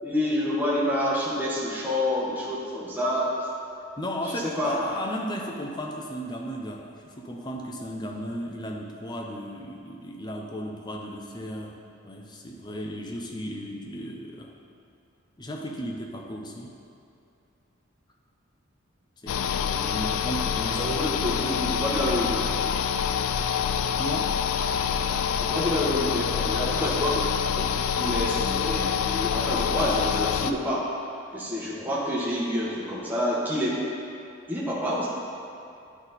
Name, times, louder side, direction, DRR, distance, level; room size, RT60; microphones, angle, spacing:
voice 1, 0.0-3.5 4.3-4.9 20.8-22.5 25.4-27.2 27.6-27.7 28.0-30.9 31.3-33.8 34.5-35.1, left 1 dB, 10° right, -6 dB, 1.0 m, -28 dB
voice 2, 4.0-14.5 15.4-16.8 19.2-21.2 23.9-24.3, equal, 20° left, 1 dB, 0.5 m, -35 dB
sound 1, 19.3-30.5, left 7 dB, 75° left, 0.3 m, -26 dB
9.9 x 4.0 x 4.1 m, 2.7 s
head